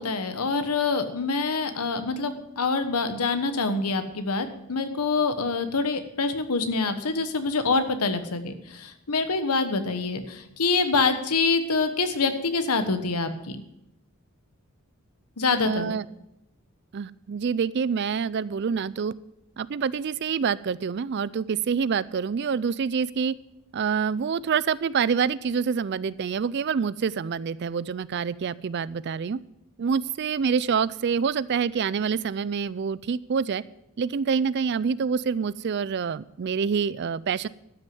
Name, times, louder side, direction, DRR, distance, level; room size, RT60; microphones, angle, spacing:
voice 1, 0.0-13.6 15.4-15.9, left 4 dB, 90° left, 9 dB, 1.2 m, -26 dB
voice 2, 15.7-16.0 16.9-19.1 19.6-23.4 23.7-29.4 29.8-33.6 34.0-37.5, right 6 dB, 50° right, 19 dB, 0.4 m, -26 dB
12.5 x 6.3 x 7.7 m, 0.84 s
head